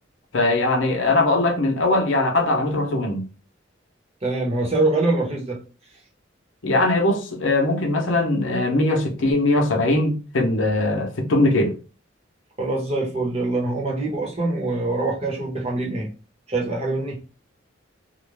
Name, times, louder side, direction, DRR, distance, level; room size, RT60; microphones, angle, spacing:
voice 1, 0.3-3.2 6.6-11.8, left 2 dB, 75° left, 0.7 m, -20 dB
voice 2, 4.2-5.6 12.6-16.1 16.5-17.2, right 2 dB, 35° right, 0.9 m, -24 dB
2.5 x 2.2 x 3.1 m
head